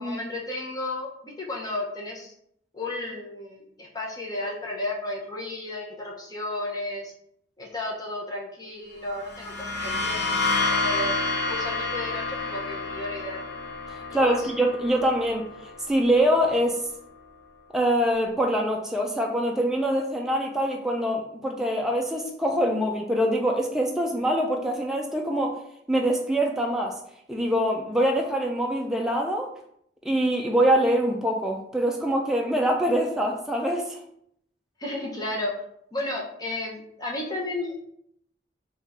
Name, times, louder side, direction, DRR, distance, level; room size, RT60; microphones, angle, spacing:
voice 1, 0.0-2.3 2.7-7.1 7.6-11.2 11.4-13.4 14.1-14.5 34.8-35.5 35.9-37.8, left 2 dB, 20° left, -2 dB, 0.7 m, -33 dB
sound 1, 9.2-16.8, left 3 dB, 65° left, 1.0 m, -30 dB
voice 2, 14.1-15.4 15.9-16.8 17.7-25.6 25.9-27.0 27.3-29.5 30.0-34.0, right 1 dB, 5° right, 0 dB, 0.3 m, -24 dB
3.6 x 2.4 x 4.1 m, 0.72 s
head